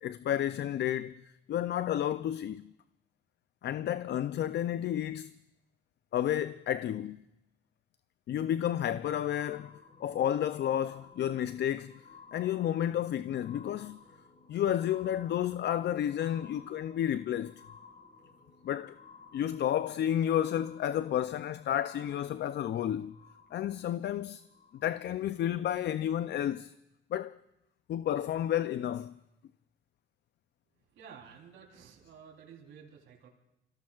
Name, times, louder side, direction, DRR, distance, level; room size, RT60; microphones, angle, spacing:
voice 1, 0.0-2.7 3.6-5.3 6.1-7.2 8.3-11.9 12.3-14.0 14.5-17.5 18.6-19.0 19.3-23.2 23.5-24.4 24.7-26.7 27.1-27.4 27.9-29.1, left 11 dB, 60° left, 0.5 m, -31 dB
sound 1, 8.4-25.2 26.0-26.1, left 5 dB, 45° left, 3.6 m, -57 dB
voice 2, 30.9-33.3, right 7 dB, 85° right, 3.6 m, -52 dB
29.5 x 17.0 x 2.4 m
cardioid pair, 90°, 20 cm